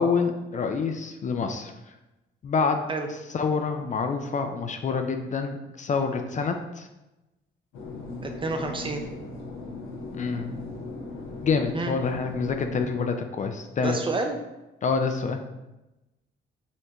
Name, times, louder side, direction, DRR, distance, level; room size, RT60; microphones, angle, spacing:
voice 1, 0.0-1.7 2.4-2.8 3.3-6.9 10.1-10.6 11.4-14.0 14.8-15.4, left 5 dB, 40° left, 6 dB, 0.4 m, -27 dB
sound 1, 7.7-12.8, left 3 dB, 90° left, 0.8 m, -38 dB
voice 2, 8.2-9.0 11.7-11.9 13.8-14.4, right 3 dB, 25° right, 4 dB, 0.5 m, -29 dB
5.5 x 2.2 x 2.9 m, 1.0 s
cardioid pair, 90°, 20 cm